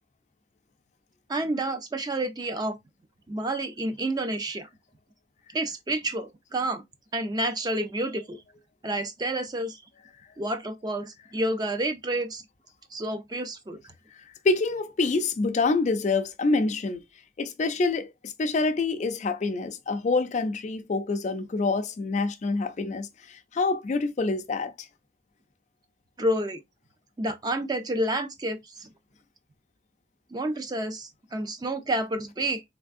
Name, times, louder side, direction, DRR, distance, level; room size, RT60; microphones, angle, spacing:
voice 1, 1.3-2.8 3.3-4.7 5.5-6.8 7.1-8.4 8.8-9.8 10.4-12.4 12.9-13.9 26.2-26.6 27.2-28.9 30.3-32.6, right 1 dB, 20° right, 0.4 m, -29 dB
voice 2, 14.4-17.0 17.4-24.9, left 3 dB, 40° left, 0.4 m, -26 dB
3.4 x 3.3 x 2.4 m
head